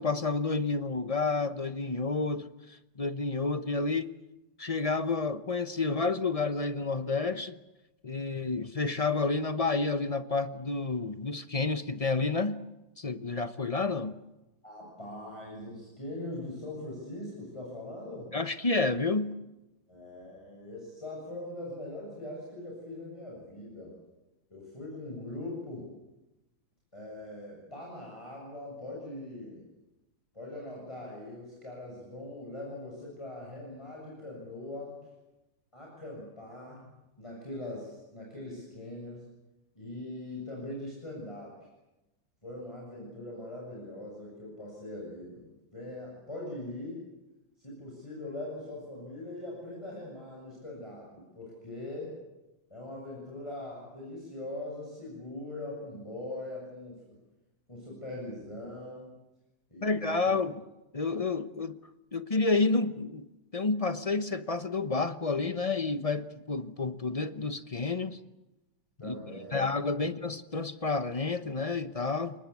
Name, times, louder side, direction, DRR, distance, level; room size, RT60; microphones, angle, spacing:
voice 1, 0.0-4.1 4.6-7.6 8.0-12.6 13.0-14.1 18.3-19.3 59.8-60.6 60.9-61.8 62.1-68.2 69.0-69.1 69.5-72.3, left 3 dB, 30° left, 0.6 m, -30 dB
voice 2, 14.6-18.3 19.9-24.0 24.5-25.9 26.9-29.7 30.3-35.0 35.7-36.9 37.2-39.3 39.8-41.6 42.4-47.0 47.6-52.2 52.7-57.0 57.7-59.1 59.7-60.4 69.0-69.6, left 1 dB, 15° left, 7.2 m, -41 dB
29.0 x 20.0 x 8.5 m
omnidirectional pair, 2.1 m